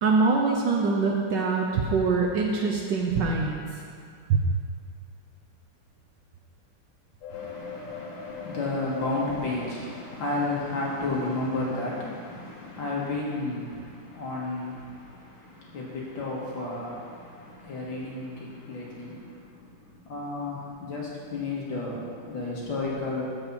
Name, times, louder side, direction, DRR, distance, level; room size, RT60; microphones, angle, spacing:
voice 1, 0.0-3.6 4.3-4.4, right 4 dB, 65° right, -1 dB, 1.2 m, -24 dB
sound 1, 7.2-11.9 12.2-12.3, left 6 dB, 85° left, 1.7 m, -43 dB
voice 2, 7.3-23.2, left 2 dB, 60° left, -5 dB, 2.3 m, -32 dB
7.2 x 5.4 x 6.8 m, 2.3 s
omnidirectional pair, 2.4 m